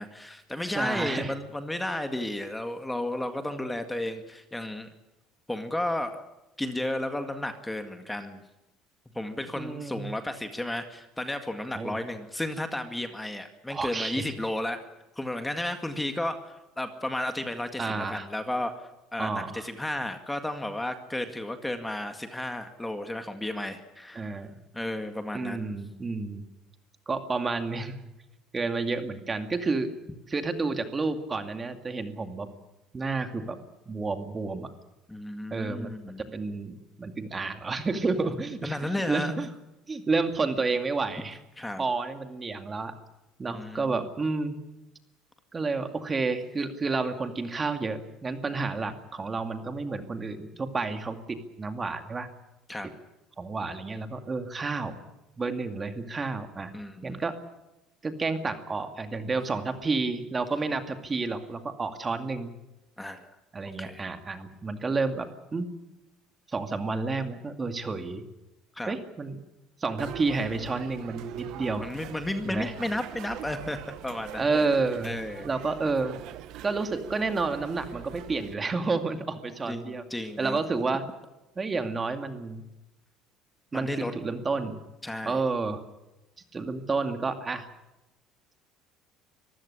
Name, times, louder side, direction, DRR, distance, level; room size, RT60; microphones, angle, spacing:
voice 1, 0.0-4.9 5.5-6.2 6.6-8.4 9.1-14.8 15.2-24.4 24.7-25.7 35.1-36.2 38.6-39.3 41.6-41.8 43.5-44.0 52.7-52.9 56.7-57.2 63.0-63.3 63.8-64.0 68.7-69.0 71.8-73.8 74.0-74.4 75.0-75.5 79.7-80.6 83.7-84.1 85.0-85.4, left 1 dB, 10° left, 7 dB, 2.0 m, -33 dB
voice 2, 0.8-1.3 9.6-10.1 11.7-12.0 13.7-14.3 17.8-18.3 19.2-19.7 24.1-24.5 25.3-26.4 27.1-28.1 28.5-29.9 30.3-32.5 32.9-33.6 33.9-34.7 35.5-35.9 36.3-38.8 39.1-39.5 39.9-41.4 41.8-42.9 43.4-44.6 45.5-52.3 53.4-54.9 55.4-56.7 57.0-57.3 58.0-62.5 63.5-65.7 66.5-68.2 68.9-69.4 69.8-71.9 72.5-72.7 74.4-75.1 75.4-76.2 76.6-80.0 80.4-81.0 81.6-82.6 83.7-84.8 85.3-85.8 86.5-87.7, right 3 dB, 25° right, 7 dB, 2.4 m, -30 dB
sound 1, 70.0-78.5, right 12 dB, 65° right, 1.3 m, -42 dB
25.0 x 15.5 x 10.0 m, 0.96 s
cardioid pair, 120°, 0 cm